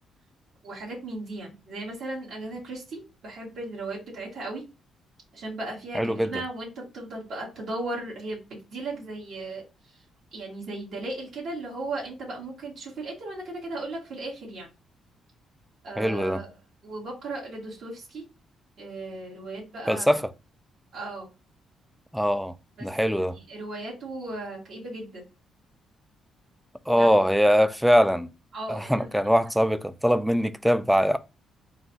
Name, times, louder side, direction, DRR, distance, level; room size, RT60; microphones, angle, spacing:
voice 1, 0.6-4.6 5.3-10.0 10.3-14.7 15.8-16.5 16.8-18.2 18.8-20.1 20.9-21.3 22.8-25.2 26.9-27.1 27.4-27.5 28.5-29.2, right 2 dB, 70° right, 1.7 m, -36 dB
voice 2, 5.9-6.3 16.0-16.4 19.9-20.2 22.1-22.5 22.8-23.4 26.9-28.3 28.7-31.2, equal, ahead, 0.3 m, -22 dB
3.8 x 2.3 x 3.9 m
cardioid pair, 90°, 0 cm